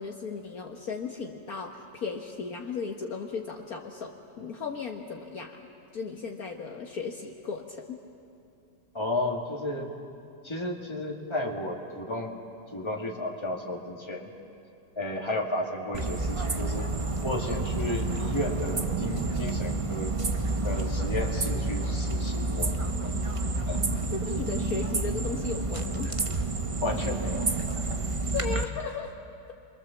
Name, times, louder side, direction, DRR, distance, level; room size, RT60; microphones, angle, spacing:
voice 1, 0.0-5.7 5.9-8.0 17.4-17.6 24.1-26.2 28.3-29.1, left 5 dB, 55° left, 2 dB, 1.7 m, -36 dB
voice 2, 8.9-9.9 10.4-12.4 12.7-14.3 15.0-16.9 17.2-20.1 20.6-22.7 23.0-23.1 23.7-23.8 26.8-27.5 27.7-28.0, left 1 dB, 15° left, 0 dB, 2.2 m, -33 dB
sound 1, 15.9-28.6, right 2 dB, 30° right, 0.6 m, -29 dB
30.0 x 23.5 x 7.3 m, 2.7 s
omnidirectional pair, 1.9 m